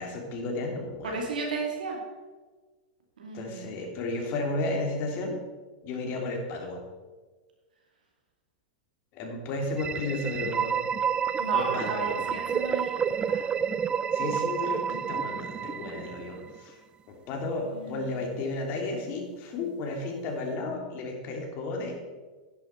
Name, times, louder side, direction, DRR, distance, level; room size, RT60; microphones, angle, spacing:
voice 1, 0.0-1.2 3.3-5.4 5.8-6.8 9.1-10.8 11.5-12.3 14.1-16.8 17.1-22.1, left 2 dB, 45° left, 2 dB, 3.1 m, -33 dB
voice 2, 1.0-2.0 3.2-3.7 11.4-13.4 17.6-18.4, right 3 dB, 85° right, 0 dB, 2.7 m, -35 dB
sound 1, 9.7-16.5, right 7 dB, 20° right, 0.3 m, -29 dB
10.5 x 10.5 x 4.5 m, 1.3 s
hypercardioid pair, 115°, 4 cm